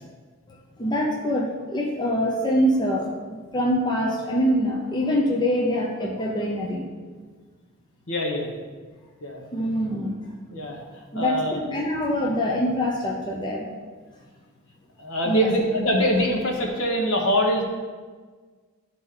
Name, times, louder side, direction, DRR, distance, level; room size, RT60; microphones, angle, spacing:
voice 1, 0.8-6.9 9.5-10.2 11.1-13.7 15.2-15.5, equal, 20° left, -2 dB, 0.6 m, -24 dB
voice 2, 8.1-8.5 9.2-9.4 10.5-10.8 11.1-11.6 15.0-17.6, equal, 70° left, 0 dB, 1.3 m, -23 dB
11.0 x 4.1 x 3.8 m, 1.5 s
head